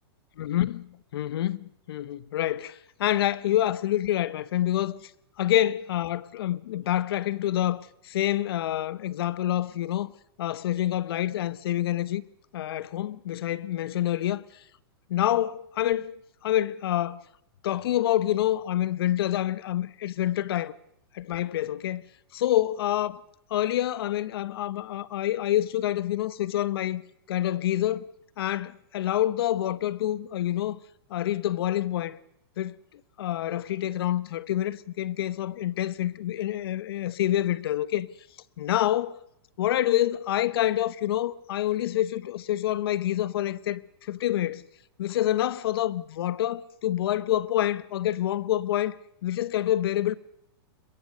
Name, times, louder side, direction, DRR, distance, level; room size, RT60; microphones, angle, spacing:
voice 1, 0.4-0.9 1.1-5.1 5.4-10.1 10.4-12.2 12.5-14.6 15.1-16.1 16.4-17.2 17.6-20.7 21.1-22.0 22.3-23.1 23.5-27.0 27.3-28.1 28.4-30.8 31.1-32.2 32.6-32.8 33.2-38.1 38.6-39.1 39.6-44.6 45.0-49.0 49.2-50.1, left 13 dB, 65° left, 1.0 m, -27 dB
23.0 x 22.0 x 6.6 m
supercardioid pair, 155°, 13 cm